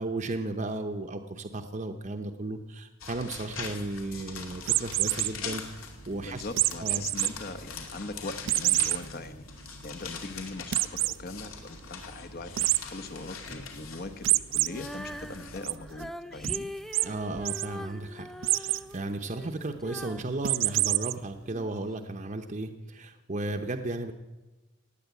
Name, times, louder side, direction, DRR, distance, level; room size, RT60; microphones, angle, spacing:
voice 1, 0.0-5.8 6.1-6.4 6.8-7.1 17.0-24.1, right 2 dB, 35° right, 5 dB, 0.8 m, -34 dB
sound 1, 3.0-15.6, left 5 dB, 80° left, 2.5 m, -42 dB
sound 2, 4.6-5.3 6.6-7.3 7.7-7.8 8.5-9.0 9.5-9.6 9.8-9.9 10.7-11.2 12.6-12.8 14.2-14.7 15.1-15.7 16.4-16.6 16.9-17.1 17.3-17.7 18.4-18.8 20.4-21.1, right 17 dB, 65° right, 0.4 m, -26 dB
voice 2, 6.2-9.4 9.8-16.7, left 2 dB, 45° left, 8 dB, 1.0 m, -41 dB
Female singing, 14.6-21.7 22.3-22.4, left 1 dB, ahead, 0.4 m, -43 dB
17.0 x 9.8 x 8.3 m, 1.1 s
head